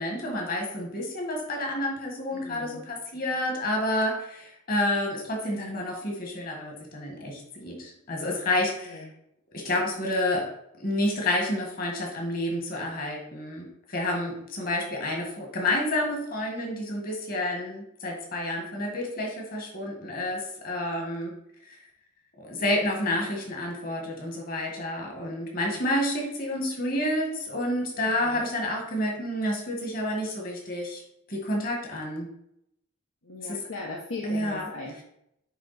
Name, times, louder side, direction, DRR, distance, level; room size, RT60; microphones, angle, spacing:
voice 1, 0.0-9.1 9.5-10.5 10.8-21.3 22.4-31.0 31.3-32.3 33.4-33.6 34.2-34.7, left 1 dB, 40° left, 1 dB, 1.8 m, -29 dB
voice 2, 2.3-2.8 8.5-9.1 28.0-28.4 33.2-35.0, left 3 dB, 80° left, -3 dB, 1.1 m, -39 dB
9.2 x 3.6 x 4.3 m, 0.77 s
head